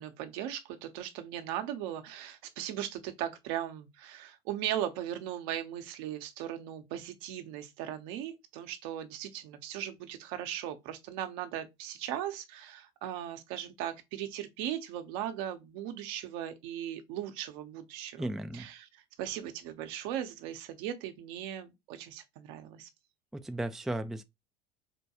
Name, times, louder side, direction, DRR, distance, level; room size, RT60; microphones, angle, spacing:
voice 1, 0.0-18.3 18.5-22.9, right 11 dB, 65° right, 0.8 m, -38 dB
voice 2, 18.2-18.7 23.3-24.2, right 1 dB, ahead, 0.4 m, -35 dB
4.3 x 2.2 x 2.9 m
hypercardioid pair, 90°, 18 cm